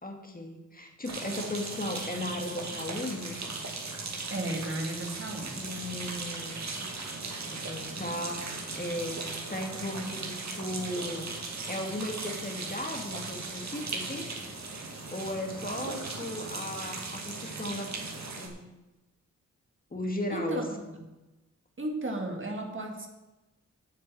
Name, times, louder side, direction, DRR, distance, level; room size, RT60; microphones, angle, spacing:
voice 1, 0.0-3.4 5.5-6.6 7.5-9.2 9.5-11.4 11.6-14.3 15.1-18.0 18.4-18.6 19.9-21.0, left 1 dB, 30° left, 3 dB, 2.1 m, -36 dB
sound 1, 1.0-18.5, right 3 dB, 60° right, 2.1 m, -38 dB
voice 2, 4.3-5.7 20.3-20.7 21.8-23.1, right 1 dB, 40° right, 3 dB, 2.0 m, -34 dB
8.5 x 6.8 x 7.8 m, 1.0 s
cardioid pair, 55°, 31 cm